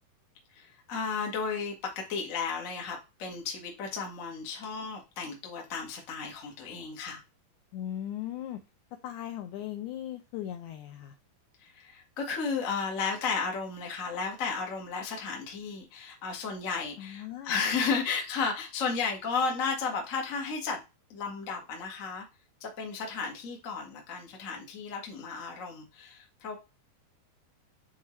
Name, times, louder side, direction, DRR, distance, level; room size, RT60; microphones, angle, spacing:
voice 1, 0.5-7.2 11.6-20.8 21.1-22.2 22.6-26.6, left 5 dB, 55° left, 0 dB, 0.8 m, -33 dB
voice 2, 7.7-8.6 9.0-11.1 17.0-17.6, left 11 dB, 80° left, 7 dB, 1.7 m, -38 dB
8.8 x 3.6 x 3.1 m, 0.28 s
omnidirectional pair, 3.9 m